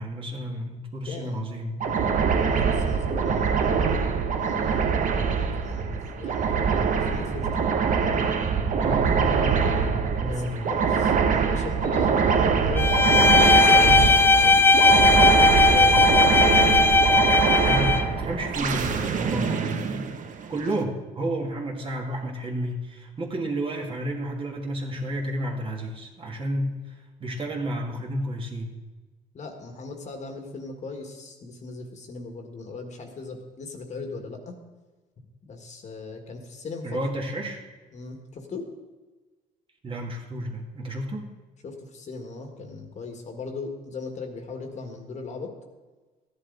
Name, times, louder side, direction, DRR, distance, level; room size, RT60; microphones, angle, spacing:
voice 1, 0.0-1.8 8.7-10.7 13.1-13.5 13.8-14.2 17.6-20.1 20.5-28.8 36.8-37.6 39.8-41.3, right 1 dB, 30° right, 0 dB, 1.9 m, -31 dB
voice 2, 1.1-1.4 2.3-3.6 4.4-5.0 5.5-7.5 10.2-13.3 13.6-14.6 15.6-16.5 29.3-34.6 35.4-37.0 37.9-38.7 41.6-45.5, left 4 dB, 45° left, 4 dB, 1.8 m, -38 dB
sound 1, 1.8-20.7, right 6 dB, 50° right, 1.1 m, -24 dB
Bowed string instrument, 12.8-18.1, left 3 dB, 15° left, 0.4 m, -18 dB
14.0 x 10.5 x 4.0 m, 1.3 s
cardioid pair, 110°, 17 cm